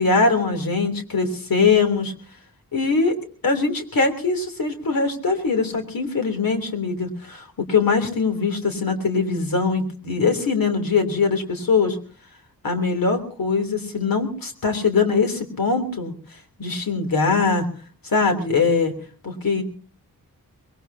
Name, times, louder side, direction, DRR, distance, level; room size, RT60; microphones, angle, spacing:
voice 1, 0.0-2.1 2.7-3.1 3.4-12.0 12.6-16.1 16.6-17.6 18.0-18.9 19.2-19.6, left 4 dB, 70° left, 7 dB, 3.3 m, -22 dB
24.0 x 21.5 x 2.8 m, 0.41 s
wide cardioid pair, 145°, 35 cm